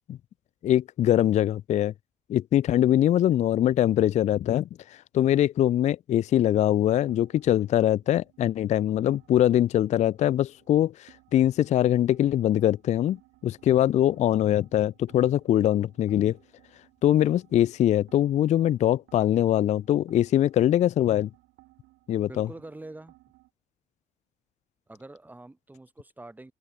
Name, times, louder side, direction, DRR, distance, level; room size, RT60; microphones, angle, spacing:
voice 1, 0.6-1.9 2.3-4.7 5.1-13.2 13.4-16.4 17.0-21.3 22.1-22.5, left 12 dB, 45° left, 0.4 m, -22 dB
sound 1, 6.1-23.5, right 19 dB, 85° right, 3.8 m, -60 dB
voice 2, 22.3-23.1 24.9-26.5, right 2 dB, 10° right, 1.5 m, -45 dB
open air
cardioid pair, 110°, 17 cm